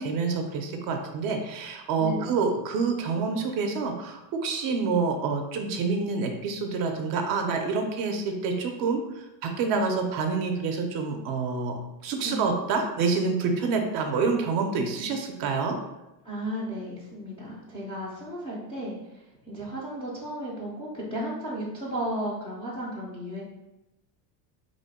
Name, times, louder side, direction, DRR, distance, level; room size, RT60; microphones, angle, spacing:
voice 1, 0.0-15.8, right 4 dB, 45° right, 4 dB, 0.5 m, -27 dB
voice 2, 2.0-2.3 12.2-12.5 16.2-23.4, equal, 15° left, -6 dB, 0.3 m, -34 dB
3.0 x 2.1 x 4.0 m, 0.95 s
supercardioid pair, 140°, 48 cm